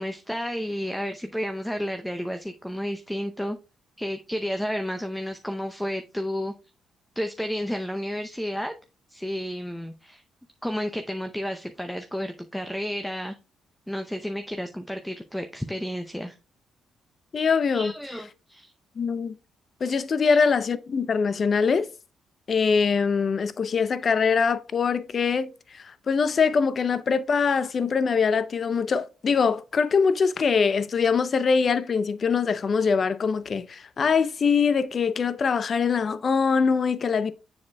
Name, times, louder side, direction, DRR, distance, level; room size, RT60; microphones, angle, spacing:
voice 1, 0.0-3.6 4.0-6.5 7.2-8.7 9.1-10.2 10.6-13.3 13.9-16.4 17.7-18.7 20.2-20.4, equal, 5° left, 0.6 m, -31 dB
voice 2, 17.3-17.9 19.0-19.3 19.8-21.9 22.5-37.3, left 5 dB, 50° left, 0.5 m, -23 dB
7.1 x 6.5 x 2.2 m
hypercardioid pair, 50°, 0 cm